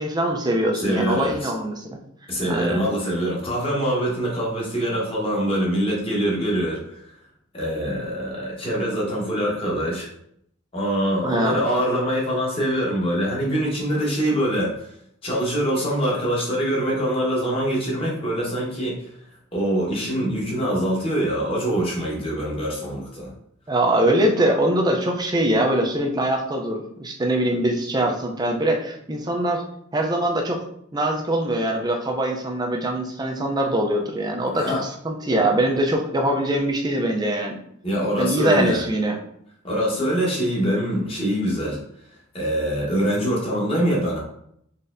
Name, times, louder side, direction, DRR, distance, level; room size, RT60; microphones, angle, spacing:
voice 1, 0.0-2.0 2.5-2.8 11.2-11.6 23.7-29.6 29.9-30.6 30.9-37.6 38.2-39.2, right 1 dB, 20° right, 2 dB, 0.5 m, -23 dB
voice 2, 0.7-1.5 2.3-7.0 7.5-10.1 10.7-14.9 15.2-19.1 19.5-23.3 34.5-34.8 37.8-38.8 39.6-41.8 42.3-44.2, equal, 30° left, -4 dB, 1.1 m, -24 dB
4.0 x 3.3 x 2.5 m, 0.72 s
head